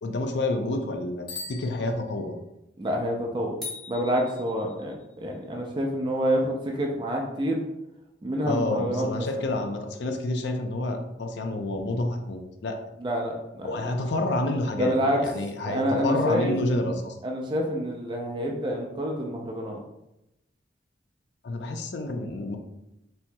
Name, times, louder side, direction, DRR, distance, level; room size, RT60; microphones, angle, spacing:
voice 1, 0.0-2.3 8.5-12.8 13.6-14.9 15.2-17.2 21.4-22.6, left 2 dB, 70° left, 5 dB, 0.4 m, -29 dB
Bicycle bell, 1.2-2.6, left 3 dB, 50° left, 1.2 m, -41 dB
voice 2, 2.8-3.6 3.9-7.6 8.2-9.4 13.0-13.8 14.8-15.2 15.6-16.5 17.2-19.8, equal, 25° right, 0 dB, 0.4 m, -27 dB
sound 1, 3.6-5.2, left 4 dB, ahead, 0.8 m, -41 dB
4.4 x 2.8 x 2.2 m, 0.89 s
head